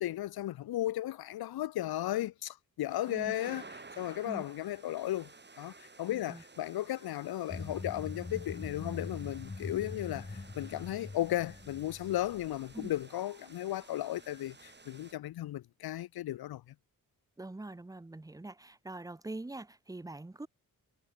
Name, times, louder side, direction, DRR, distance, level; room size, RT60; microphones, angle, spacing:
voice 1, 0.0-3.6 4.0-5.3 5.6-16.7, left 14 dB, 90° left, 0.7 m, -35 dB
sound 1, 2.9-15.1, right 3 dB, 30° right, 5.4 m, -54 dB
voice 2, 6.1-6.4 12.7-12.9 17.4-20.5, right 2 dB, 10° right, 0.8 m, -44 dB
sound 2, 7.5-13.0, left 3 dB, 25° left, 2.4 m, -43 dB
cardioid pair, 85°, 36 cm